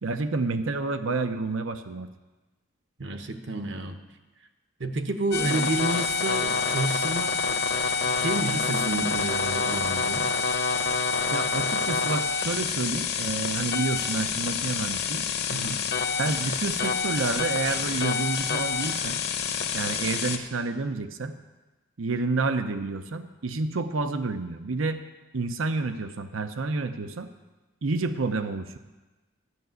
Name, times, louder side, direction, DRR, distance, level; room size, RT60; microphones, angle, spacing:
voice 1, 0.0-2.1 5.6-5.7 11.3-15.3 16.2-19.2 19.7-21.4 22.0-25.0 25.3-27.3 27.8-28.8, right 3 dB, 85° right, 9 dB, 0.7 m, -29 dB
voice 2, 3.0-4.0 4.8-7.6 8.1-10.3 15.5-15.9, right 2 dB, 60° right, 7 dB, 1.0 m, -30 dB
sound 1, 5.3-20.4, left 5 dB, 50° left, 0.9 m, -27 dB
12.0 x 6.7 x 9.3 m, 1.2 s
head